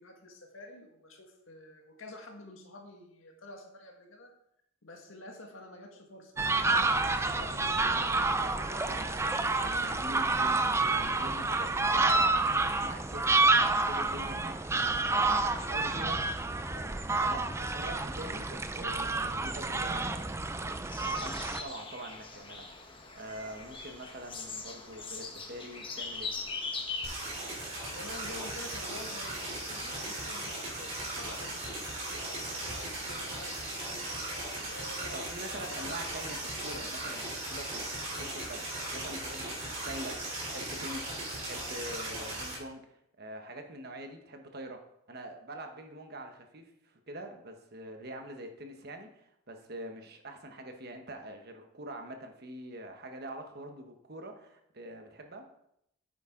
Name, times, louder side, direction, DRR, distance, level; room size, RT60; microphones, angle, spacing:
voice 1, 0.0-4.3 4.8-9.5 27.6-34.2 34.6-36.0, left 1 dB, 85° left, 2 dB, 1.9 m, -49 dB
sound 1, 6.4-21.6, right 3 dB, 15° right, 0.4 m, -29 dB
voice 2, 8.4-16.3 16.7-26.3 35.1-37.9 38.2-41.2 41.4-55.5, right 1 dB, 50° right, 5 dB, 1.2 m, -45 dB
sound 2, 20.9-27.1, left 4 dB, 25° left, 1.3 m, -40 dB
sound 3, 27.0-42.5, right 1 dB, 35° right, 3.7 m, -38 dB
9.6 x 8.9 x 3.8 m, 0.78 s
head